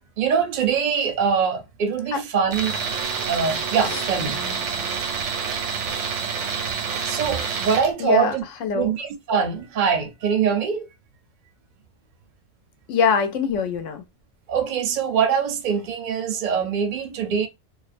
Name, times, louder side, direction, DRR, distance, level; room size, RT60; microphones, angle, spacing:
voice 1, 0.2-2.8 3.3-4.4 7.0-8.4 8.7-10.9 14.5-17.5, right 6 dB, 55° right, 0.6 m, -23 dB
Tools, 2.5-7.9, right 6 dB, 80° right, 0.9 m, -28 dB
voice 2, 8.0-8.4 8.6-8.9 12.9-14.0, left 6 dB, 85° left, 0.9 m, -23 dB
2.5 x 2.0 x 2.4 m
omnidirectional pair, 1.3 m